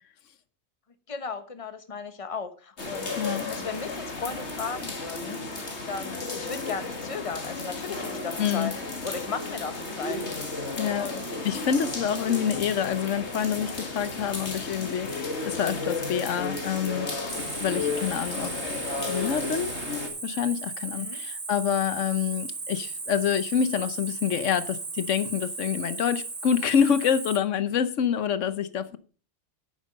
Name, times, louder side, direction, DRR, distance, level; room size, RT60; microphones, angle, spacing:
voice 1, 1.1-5.4 5.9-8.7 9.0-10.2 10.9-11.2 20.9-21.2, left 5 dB, 30° left, 1.1 m, -36 dB
sound 1, 2.8-20.1, left 3 dB, 65° left, 2.5 m, -33 dB
voice 2, 3.2-3.5 8.4-8.7 10.8-11.1 11.4-17.3 17.6-18.6 19.1-19.7 20.2-29.0, left 8 dB, 90° left, 1.2 m, -27 dB
Cricket, 17.3-27.4, right 3 dB, 50° right, 2.0 m, -36 dB
10.5 x 8.8 x 5.2 m
omnidirectional pair, 1.2 m